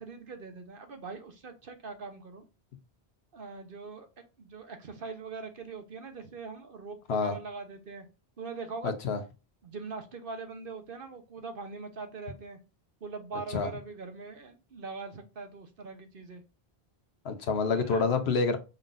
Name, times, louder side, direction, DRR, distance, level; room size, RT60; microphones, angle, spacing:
voice 1, 0.0-2.4 3.3-8.1 8.4-9.0 9.6-12.6 13.0-16.4 17.7-18.1, right 4 dB, 60° right, 1.1 m, -42 dB
voice 2, 8.8-9.2 13.5-13.7 17.2-18.6, left 4 dB, 85° left, 1.0 m, -27 dB
5.4 x 3.8 x 2.5 m
omnidirectional pair, 1.0 m